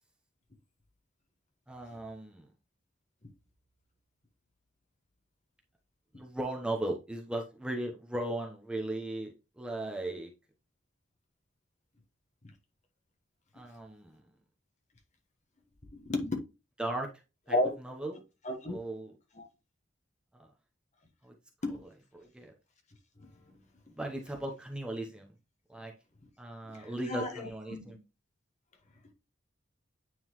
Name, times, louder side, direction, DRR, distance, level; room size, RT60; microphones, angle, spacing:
voice 1, 1.7-2.5 6.1-10.3 13.5-14.3 16.8-17.1 17.5-17.6 17.8-18.2 18.7-19.1 20.3-20.5 21.2-21.3 22.1-22.5 23.9-25.3 25.7-25.9 26.4-28.0, right 1 dB, 5° right, 0.8 m, -37 dB
voice 2, 15.9-16.3 17.5-17.7 18.4-18.8 19.4-19.5 21.6-21.8 26.8-28.0, left 1 dB, 35° left, 1.2 m, -32 dB
9.1 x 3.9 x 3.0 m
head